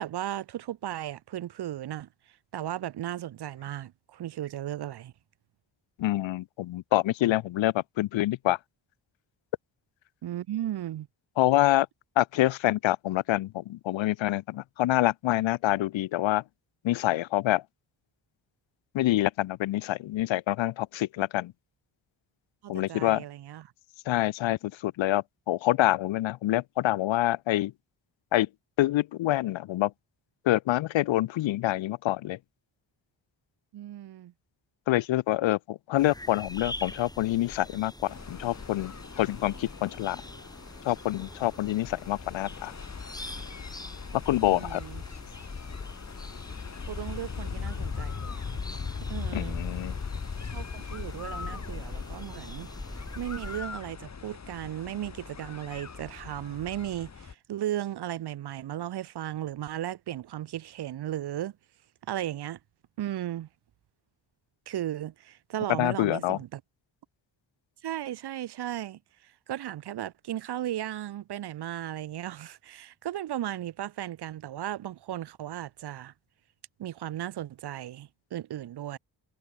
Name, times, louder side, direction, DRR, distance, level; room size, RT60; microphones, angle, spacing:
voice 1, 0.0-2.1 2.5-5.1 10.2-11.1 22.6-23.7 33.7-34.3 44.4-45.0 46.8-48.6 49.0-49.6 50.5-52.7 53.2-61.5 62.1-62.6 63.0-63.5 64.7-66.6 67.8-76.1 76.8-79.0, right 12 dB, 60° right, 0.6 m, -36 dB
voice 2, 6.0-8.6 11.4-11.9 12.2-16.4 16.8-17.6 18.9-21.5 22.7-23.2 24.1-27.7 28.3-28.5 28.8-29.9 30.4-32.4 34.9-40.2 40.9-42.7 44.3-44.8 49.3-49.9 65.8-66.4, left 15 dB, 80° left, 0.6 m, -26 dB
sound 1, 36.0-53.6, left 1 dB, 10° left, 4.6 m, -44 dB
sound 2, 38.1-57.3, left 5 dB, 35° left, 1.5 m, -39 dB
cardioid pair, 85°, 45 cm